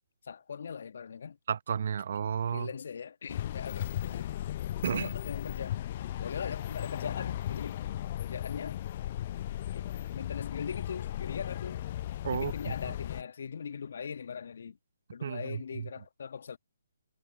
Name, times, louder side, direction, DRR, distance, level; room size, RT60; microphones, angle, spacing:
voice 1, 0.2-1.4 2.5-4.6 4.9-5.8 6.2-7.8 8.2-8.8 9.7-11.8 12.3-14.8 15.1-16.6, left 6 dB, 55° left, 1.8 m, -40 dB
voice 2, 1.5-2.7 4.8-5.1 12.2-12.7 15.2-15.9, right 7 dB, 50° right, 0.8 m, -32 dB
sound 1, 3.3-13.2, left 12 dB, 40° left, 0.8 m, -36 dB
figure-of-eight pair, 135°, 0 cm